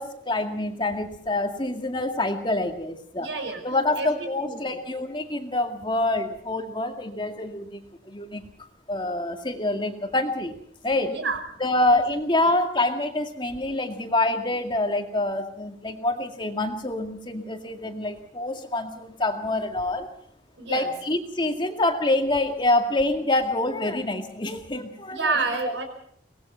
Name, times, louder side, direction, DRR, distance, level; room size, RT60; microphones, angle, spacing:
voice 1, 0.0-3.3 3.6-8.4 8.9-10.5 10.8-11.2 11.6-20.1 20.7-25.4 25.6-25.7, left 2 dB, 25° left, 5 dB, 2.2 m, -26 dB
voice 2, 3.2-4.8 11.1-11.4 11.9-12.0 12.4-12.5 20.6-20.9 25.1-25.8, right 3 dB, 90° right, 5 dB, 5.4 m, -30 dB
24.0 x 19.5 x 5.7 m, 0.62 s
head